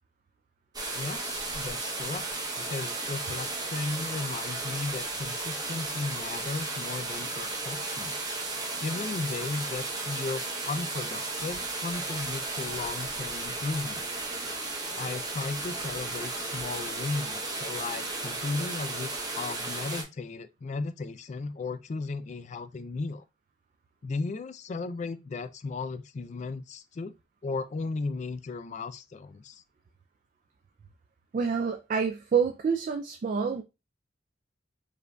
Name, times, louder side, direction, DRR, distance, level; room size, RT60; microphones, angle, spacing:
sound 1, 0.7-20.0, right 2 dB, 20° right, 0.7 m, -34 dB
voice 1, 0.9-2.2 2.6-8.2 8.8-14.1 14.9-23.2 24.0-27.1 27.4-29.6, left 3 dB, 40° left, 0.3 m, -35 dB
voice 2, 31.3-33.6, right 6 dB, 45° right, 0.3 m, -27 dB
4.8 x 2.5 x 2.2 m
head